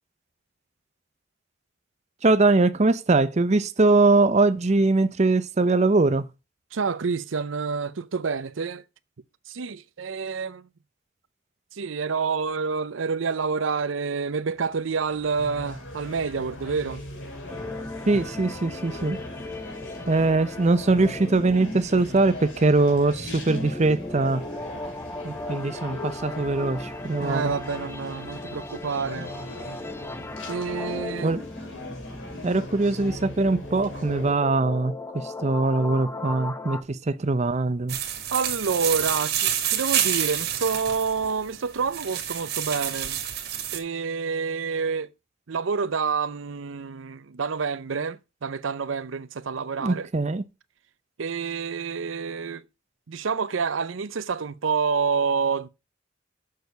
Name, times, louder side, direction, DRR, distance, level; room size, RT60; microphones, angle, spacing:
voice 1, 2.2-6.3 18.1-19.2 20.1-24.4 25.2-27.5 31.2-31.4 32.4-38.0 49.8-50.4, right 3 dB, 35° right, 0.6 m, -22 dB
voice 2, 6.7-8.8 9.5-10.6 11.7-17.0 27.2-29.3 30.5-31.3 38.3-43.2 43.7-45.1 45.5-50.1 51.2-52.6 53.1-55.7, right 5 dB, 75° right, 0.6 m, -28 dB
sound 1, 14.6-34.3, left 1 dB, 70° left, 4.1 m, -40 dB
sound 2, 17.5-36.8, left 2 dB, 10° left, 0.6 m, -37 dB
sound 3, 37.9-43.8, right 10 dB, 55° right, 1.8 m, -28 dB
6.6 x 6.5 x 6.8 m
head